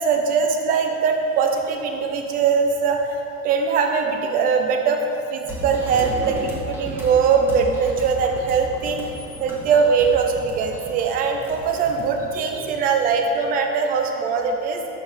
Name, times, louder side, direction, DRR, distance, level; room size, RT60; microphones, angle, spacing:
voice 1, 0.0-3.2 3.4-9.0 9.4-14.8, right 5 dB, 20° right, 4 dB, 0.3 m, -21 dB
sound 1, 5.5-13.0, equal, 5° right, 1.4 m, -34 dB
6.6 x 5.2 x 3.3 m, 2.7 s
hypercardioid pair, 100°, 45 cm